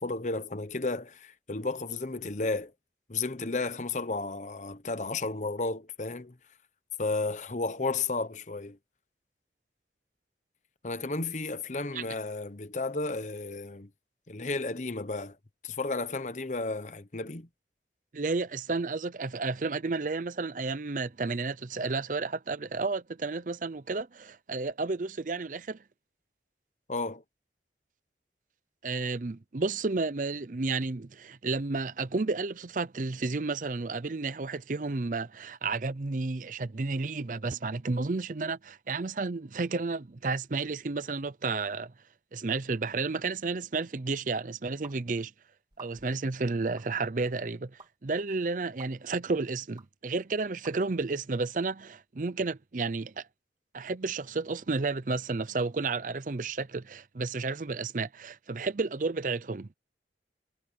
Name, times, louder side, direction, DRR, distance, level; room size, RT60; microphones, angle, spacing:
voice 1, 0.0-2.7 3.1-6.4 7.0-8.8 10.8-13.9 14.3-15.4 15.6-17.5 26.9-27.2, left 3 dB, 45° left, 1.0 m, -33 dB
voice 2, 18.1-25.8 28.8-41.9 42.3-45.3 45.8-53.3 53.7-59.7, right 3 dB, 45° right, 0.6 m, -32 dB
sound 1, 44.8-45.0 45.7-46.2 46.8-46.9 47.8-47.9 48.8-48.9 49.8-49.9 50.6-50.8, right 4 dB, 25° right, 3.2 m, -50 dB
head